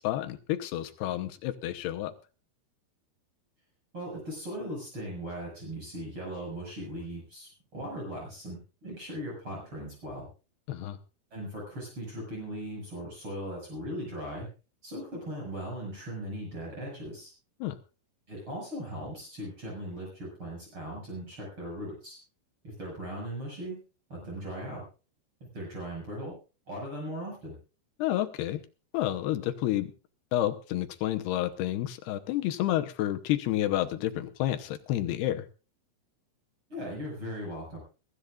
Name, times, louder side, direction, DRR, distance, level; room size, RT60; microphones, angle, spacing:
voice 1, 0.0-2.1 10.7-11.0 17.6-17.8 28.0-28.6 28.9-29.9 30.3-35.5, left 13 dB, 80° left, 8 dB, 2.9 m, -30 dB
voice 2, 3.9-10.3 11.3-14.5 14.8-17.3 18.3-22.2 22.6-23.8 24.1-24.8 25.4-26.3 26.7-27.6 36.7-37.8, equal, 30° right, -2 dB, 7.0 m, -38 dB
22.5 x 14.5 x 2.5 m, 0.34 s
omnidirectional pair, 4.7 m